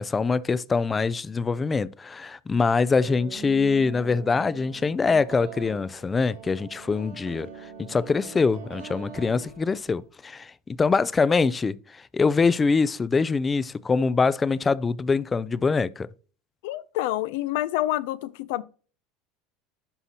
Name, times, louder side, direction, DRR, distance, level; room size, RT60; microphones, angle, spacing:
voice 1, 0.0-7.5 7.8-16.1, left 4 dB, 20° left, 0.4 m, -24 dB
sound 1, 3.0-10.1, right 6 dB, 90° right, 2.5 m, -43 dB
voice 2, 16.6-18.6, left 15 dB, 75° left, 0.5 m, -27 dB
11.0 x 4.1 x 2.9 m
supercardioid pair, 115°, 0 cm